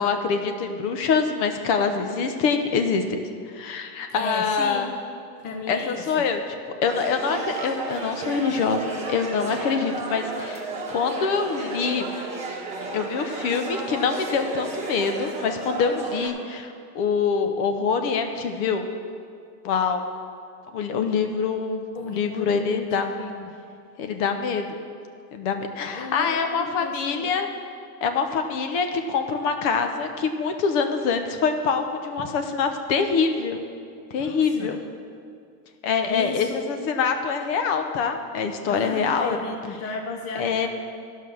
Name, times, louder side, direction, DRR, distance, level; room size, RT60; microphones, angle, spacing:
voice 1, 0.0-3.2 3.5-4.9 5.7-6.4 6.8-10.6 10.9-12.1 12.9-18.9 19.6-20.0 20.7-23.1 24.0-24.8 25.3-27.5 28.0-33.6 34.1-34.8 35.8-39.4 40.4-40.7, left 5 dB, 50° left, 6 dB, 1.0 m, -25 dB
voice 2, 4.1-4.9 5.4-6.3 12.1-12.2 21.9-23.5 25.9-27.3 32.2-32.3 34.1-34.8 36.1-36.6 38.7-40.7, left 4 dB, 30° left, 3 dB, 0.7 m, -34 dB
sound 1, 6.8-16.3, right 3 dB, 15° right, 1.6 m, -33 dB
13.0 x 5.6 x 6.3 m, 2.3 s
supercardioid pair, 140°, 48 cm